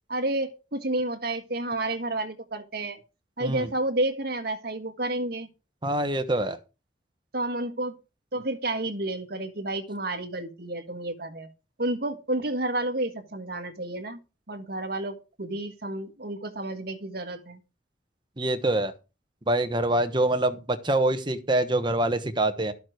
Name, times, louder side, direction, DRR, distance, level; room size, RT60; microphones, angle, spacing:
voice 1, 0.1-3.0 3.4-5.5 7.3-7.9 8.3-11.5 11.8-14.2 14.5-17.6, right 2 dB, 55° right, 6 dB, 1.6 m, -30 dB
voice 2, 5.8-6.6 18.4-18.9 19.5-22.7, right 1 dB, 25° right, 9 dB, 1.1 m, -25 dB
12.5 x 7.3 x 4.6 m, 0.31 s
head